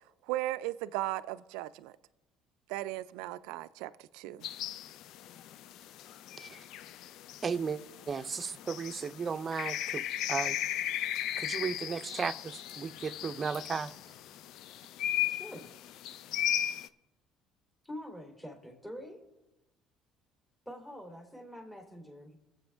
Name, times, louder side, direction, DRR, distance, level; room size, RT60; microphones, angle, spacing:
voice 1, 0.3-2.0 2.7-4.5, right 16 dB, 85° right, 0.4 m, -36 dB
sound 1, 4.4-16.9, left 11 dB, 70° left, 0.4 m, -37 dB
voice 2, 7.4-7.8 8.1-10.0 10.3-10.5 11.4-13.9, right 5 dB, 35° right, 0.6 m, -35 dB
voice 3, 15.3-15.7 17.8-19.2 20.6-22.4, equal, 15° left, 3.3 m, -45 dB
21.0 x 7.7 x 3.5 m
supercardioid pair, 85°, 0 cm